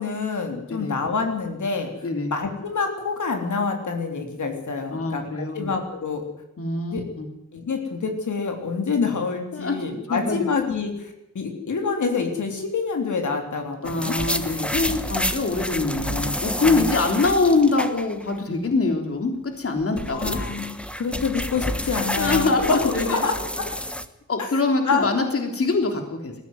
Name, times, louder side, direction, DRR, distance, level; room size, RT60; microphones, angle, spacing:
voice 1, 0.0-6.2 6.9-7.0 7.5-14.2 16.6-16.9 20.1-23.3 24.4-25.1, left 4 dB, 80° left, 4 dB, 3.6 m, -27 dB
voice 2, 4.9-5.8 6.6-7.3 9.5-10.5 13.8-20.4 22.1-23.3 24.3-26.4, left 3 dB, 50° left, 4 dB, 3.5 m, -24 dB
sound 1, 13.8-18.3 18.6-18.7 19.6-24.1, equal, 5° left, 1.3 m, -29 dB
20.5 x 15.0 x 9.5 m, 0.86 s
wide cardioid pair, 150°, 29 cm